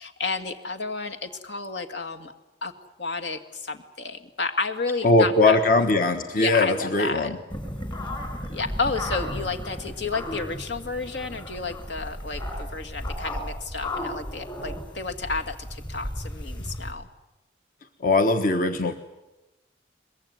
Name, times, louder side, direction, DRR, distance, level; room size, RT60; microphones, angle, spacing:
voice 1, 0.0-2.3 2.6-2.7 3.0-5.6 6.4-7.3 8.5-17.1, left 4 dB, 75° left, 5 dB, 2.1 m, -31 dB
voice 2, 5.0-7.4 16.6-16.7 18.0-18.9, left 2 dB, 50° left, 7 dB, 1.3 m, -20 dB
sound 1, 7.5-16.9, left 1 dB, 25° left, 4.5 m, -34 dB
23.0 x 21.5 x 9.4 m, 1.0 s
head